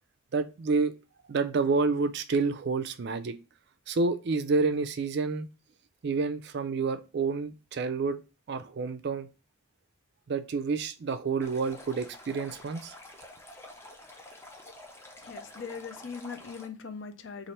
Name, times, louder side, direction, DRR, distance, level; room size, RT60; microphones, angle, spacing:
voice 1, 0.3-0.9 1.3-3.4 3.9-5.5 6.0-8.2 8.5-9.3 10.3-12.9, right 4 dB, 50° right, 0.4 m, -29 dB
Stream, 11.4-16.7, left 1 dB, 10° left, 0.5 m, -48 dB
voice 2, 15.2-17.5, left 5 dB, 60° left, 0.5 m, -40 dB
3.2 x 2.5 x 4.2 m
head